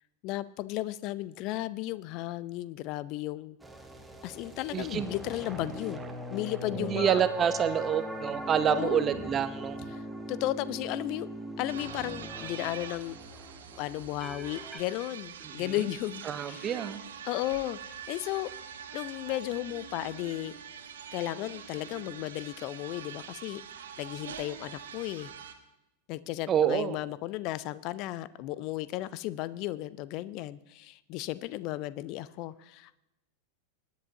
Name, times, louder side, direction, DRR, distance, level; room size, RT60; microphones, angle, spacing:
voice 1, 0.2-3.6 4.2-6.0 6.3-7.2 8.7-9.2 9.9-10.0 10.3-11.3 11.6-13.2 13.8-16.7 17.2-18.5 18.9-20.5 21.1-23.6 24.0-25.3 26.1-33.0, left 16 dB, 40° left, 18 dB, 0.5 m, -34 dB
sound 1, 3.6-14.8, right 1 dB, 5° right, 1.3 m, -40 dB
voice 2, 4.7-5.1 6.8-9.8 15.5-15.9 16.3-17.0 26.5-27.0, right 9 dB, 25° right, 12 dB, 0.8 m, -28 dB
sound 2, 11.7-25.5, right 7 dB, 65° right, 1.2 m, -44 dB
20.5 x 10.5 x 2.8 m, 0.92 s
figure-of-eight pair, 90°, 0 cm